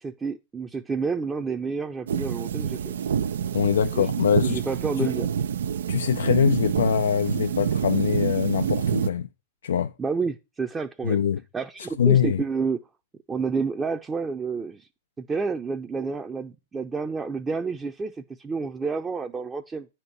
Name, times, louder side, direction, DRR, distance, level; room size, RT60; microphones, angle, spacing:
voice 1, 0.0-2.9 3.9-4.1 4.4-5.3 10.0-11.2 11.5-12.8 13.3-14.9 15.2-19.9, right 4 dB, 15° right, 0.7 m, -29 dB
sound 1, 2.1-9.1, right 8 dB, 80° right, 0.6 m, -27 dB
voice 2, 3.5-4.6 5.0-5.1 5.9-9.3 9.6-9.9 11.0-11.4 12.0-12.4, left 8 dB, 80° left, 0.5 m, -23 dB
9.5 x 4.5 x 6.7 m
hypercardioid pair, 125°, 0 cm